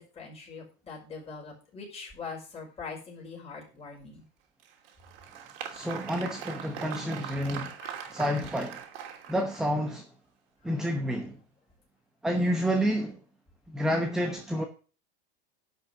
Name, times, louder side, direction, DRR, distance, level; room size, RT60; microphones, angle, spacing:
voice 1, 0.0-4.2 6.7-6.9 7.8-8.2 14.3-14.7, left 5 dB, 20° left, 5.4 m, -43 dB
Applause, 4.6-9.9, right 9 dB, 65° right, 2.8 m, -41 dB
voice 2, 5.7-7.7 8.1-8.8 9.3-10.0 10.6-11.4 12.2-13.2 13.7-14.6, equal, ahead, 0.9 m, -29 dB
11.5 x 5.7 x 6.7 m
supercardioid pair, 145°, 32 cm